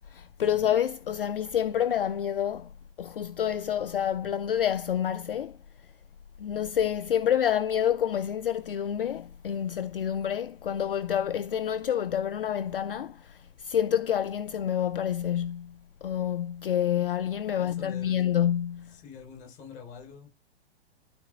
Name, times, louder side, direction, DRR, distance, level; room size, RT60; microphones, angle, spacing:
voice 1, 0.1-2.7 3.0-5.6 6.4-18.9, left 9 dB, 55° left, 0.5 m, -28 dB
voice 2, 17.6-18.2 18.9-20.3, left 6 dB, 25° left, 3.8 m, -46 dB
12.0 x 4.2 x 3.4 m
figure-of-eight pair, 115°, 32 cm